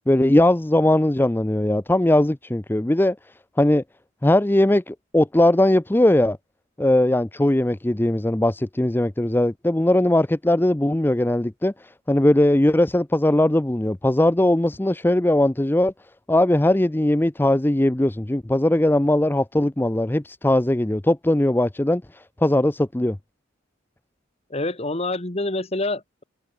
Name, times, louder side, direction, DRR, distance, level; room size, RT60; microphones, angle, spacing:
voice 1, 0.1-3.2 3.6-3.8 4.2-6.4 6.8-15.9 16.3-23.2, left 1 dB, 10° left, 0.5 m, -19 dB
voice 2, 24.5-26.2, left 2 dB, 30° left, 1.8 m, -27 dB
head